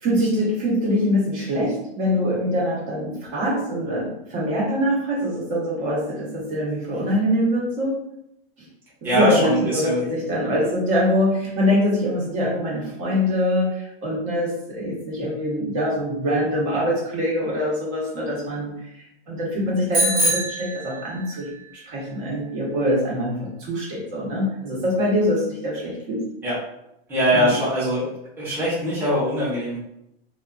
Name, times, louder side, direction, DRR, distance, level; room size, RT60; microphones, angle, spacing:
voice 1, 0.0-7.9 9.0-18.7 19.3-21.5 21.9-26.2 27.3-27.5, equal, 50° right, -4 dB, 1.2 m, -23 dB
voice 2, 9.0-10.1 26.4-26.6 27.1-28.1 28.4-29.8, equal, 5° right, -9 dB, 0.8 m, -22 dB
Bicycle bell, 19.9-21.5, right 1 dB, 80° right, 1.4 m, -24 dB
2.6 x 2.5 x 2.3 m, 0.80 s
supercardioid pair, 130°, 30 cm